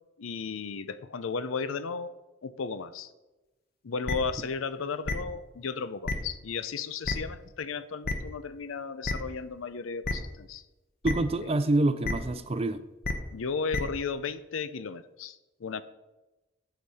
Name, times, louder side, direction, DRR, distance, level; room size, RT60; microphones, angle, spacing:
voice 1, 0.2-2.1 2.4-3.1 3.8-10.6 11.4-11.5 13.3-15.8, left 5 dB, 90° left, 0.5 m, -34 dB
sound 1, 4.1-4.2 5.1-5.2 6.1-6.2 7.1-7.2 8.0-8.1 9.0-9.1 10.0-10.1 11.0-11.1 12.0-12.1 13.0-13.1 13.7-13.8, left 3 dB, 50° left, 0.9 m, -28 dB
voice 2, 11.0-12.8, right 2 dB, 30° right, 0.5 m, -26 dB
8.3 x 7.9 x 4.2 m
head